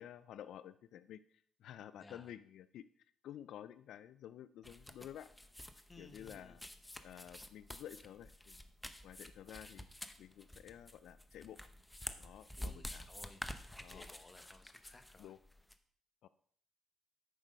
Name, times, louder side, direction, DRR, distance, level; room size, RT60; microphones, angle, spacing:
voice 1, 0.0-5.3 6.0-6.6 7.0-8.6 9.0-9.9 10.2-11.6 12.2-13.1 13.8-14.1 15.2-15.4 16.2-16.3, left 10 dB, 80° left, 14 dB, 0.3 m, -52 dB
voice 2, 2.0-2.3 5.9-6.6 12.6-13.5 13.9-15.3, left 2 dB, 25° left, 8 dB, 1.1 m, -59 dB
sound 1, 4.6-15.7, left 1 dB, 10° left, 0.8 m, -50 dB
9.1 x 6.2 x 5.3 m, 0.62 s
cardioid pair, 90°, 0 cm